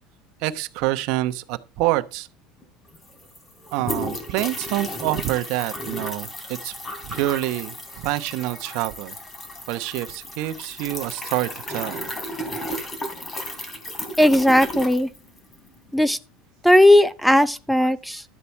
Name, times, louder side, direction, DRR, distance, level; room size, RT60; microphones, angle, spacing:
voice 1, 0.4-2.3 3.7-6.7 7.0-9.1 9.7-12.1, right 17 dB, 65° right, 0.9 m, -27 dB
sound 1, 2.6-2.7 2.9-15.7, left 1 dB, 20° left, 3.1 m, -34 dB
voice 2, 14.2-15.1 15.9-16.2 16.6-18.2, left 1 dB, ahead, 0.5 m, -16 dB
12.5 x 8.3 x 4.5 m
supercardioid pair, 115°, 0 cm